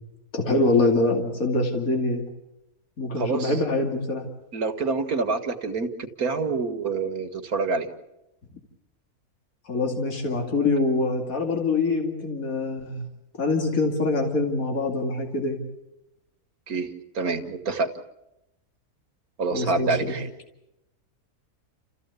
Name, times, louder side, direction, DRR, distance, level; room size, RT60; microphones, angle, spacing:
voice 1, 0.3-2.3 3.0-4.2 9.7-13.1 13.4-15.6 19.5-20.1, left 3 dB, 65° left, 2 dB, 3.0 m, -24 dB
voice 2, 3.2-3.6 4.5-7.9 16.7-16.9 17.2-17.9 19.4-20.3, right 4 dB, 70° right, 6 dB, 2.1 m, -27 dB
29.5 x 15.0 x 8.2 m, 0.90 s
omnidirectional pair, 1.6 m